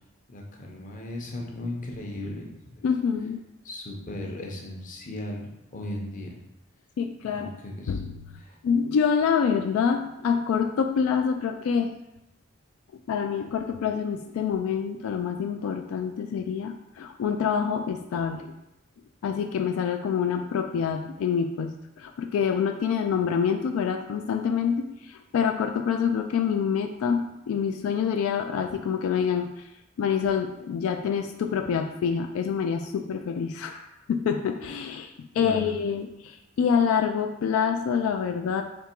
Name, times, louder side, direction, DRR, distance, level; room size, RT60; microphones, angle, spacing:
voice 1, 0.3-2.8 3.6-6.4 7.4-8.0 8.4-8.6 35.3-35.7, left 1 dB, 40° left, 0 dB, 0.7 m, -36 dB
voice 2, 2.8-3.4 7.0-7.5 7.9-11.9 13.1-18.5 19.2-29.7 30.0-38.6, left 7 dB, 85° left, 7 dB, 0.3 m, -26 dB
3.5 x 2.9 x 4.4 m, 0.89 s
head